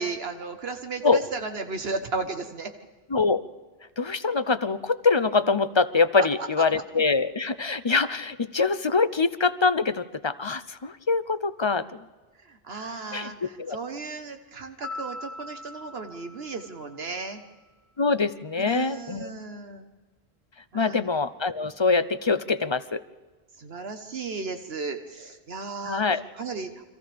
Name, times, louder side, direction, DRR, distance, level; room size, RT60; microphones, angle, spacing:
voice 1, 0.0-2.7 12.4-17.4 18.6-19.9 20.7-21.1 23.6-26.0 26.3-26.9, right 4 dB, 75° right, 6 dB, 1.4 m, -35 dB
voice 2, 3.1-3.4 4.0-11.9 13.1-13.8 18.0-19.3 20.7-23.0 25.9-26.2, left 4 dB, 35° left, 14 dB, 0.6 m, -24 dB
Piano, 14.8-17.4, left 2 dB, 30° right, 4.0 m, -41 dB
29.5 x 25.0 x 3.5 m, 1.3 s
omnidirectional pair, 1.0 m